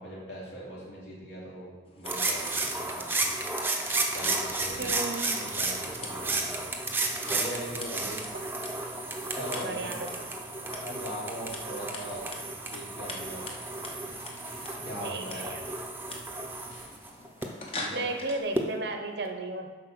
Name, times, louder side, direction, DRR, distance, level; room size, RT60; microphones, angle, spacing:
voice 1, 0.0-3.1 4.1-4.9 5.4-6.5 7.3-8.2 9.3-9.9 10.7-12.2 12.6-13.4 14.8-15.5 17.8-18.0, equal, 70° left, -5 dB, 2.7 m, -40 dB
Scissors, 1.9-18.4, left 2 dB, 30° left, 0.9 m, -45 dB
sound 1, 2.0-17.5 18.6-18.7, right 2 dB, 10° right, 0.7 m, -33 dB
sound 2, 4.5-17.2, equal, 50° left, 2.8 m, -50 dB
voice 2, 4.8-5.4 8.3-8.5 9.6-10.3 15.0-15.6 17.9-19.8, right 2 dB, 70° right, 6 dB, 0.8 m, -34 dB
7.7 x 5.5 x 6.0 m, 1.4 s
head